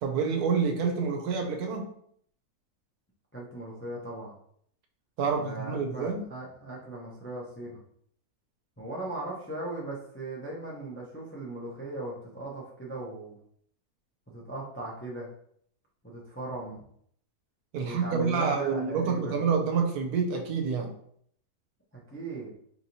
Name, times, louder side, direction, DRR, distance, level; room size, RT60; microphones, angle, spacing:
voice 1, 0.0-1.9 5.2-6.2 17.7-20.9, right 5 dB, 80° right, 3 dB, 1.2 m, -28 dB
voice 2, 3.3-4.3 5.3-7.8 8.8-13.4 14.3-15.3 16.0-16.8 17.8-19.4 22.1-22.6, right 2 dB, 15° left, -4 dB, 0.4 m, -38 dB
4.7 x 3.0 x 2.7 m, 0.65 s
omnidirectional pair, 1.6 m